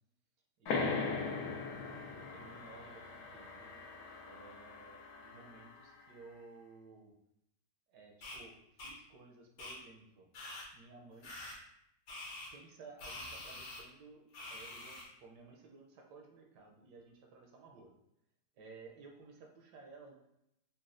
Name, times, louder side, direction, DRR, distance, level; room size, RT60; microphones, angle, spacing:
voice 1, 0.6-1.5 2.1-3.8 4.2-7.1 7.9-10.3 10.7-11.3 12.5-17.9 18.6-20.1, right 4 dB, 75° right, 1 dB, 1.1 m, -56 dB
sound 1, 0.7-5.9, left 4 dB, 70° left, 0.9 m, -40 dB
sound 2, 8.2-8.4 8.8-8.9 9.6-9.7 10.3-10.6 11.2-11.5 12.1-12.5 13.0-13.8 14.3-15.0, left 2 dB, 85° left, 1.5 m, -46 dB
4.0 x 2.1 x 2.5 m, 0.80 s
omnidirectional pair, 1.9 m